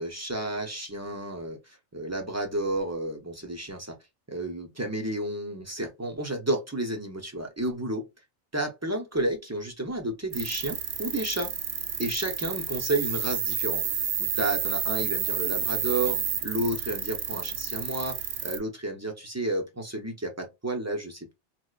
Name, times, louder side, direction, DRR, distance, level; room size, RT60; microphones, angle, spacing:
voice 1, 0.0-3.9 4.3-8.1 8.5-11.5 12.0-13.8 14.2-21.3, right 1 dB, 20° right, 0.5 m, -31 dB
sound 1, 10.3-18.6, right 7 dB, 65° right, 0.8 m, -30 dB
4.7 x 2.1 x 2.3 m
omnidirectional pair, 1.2 m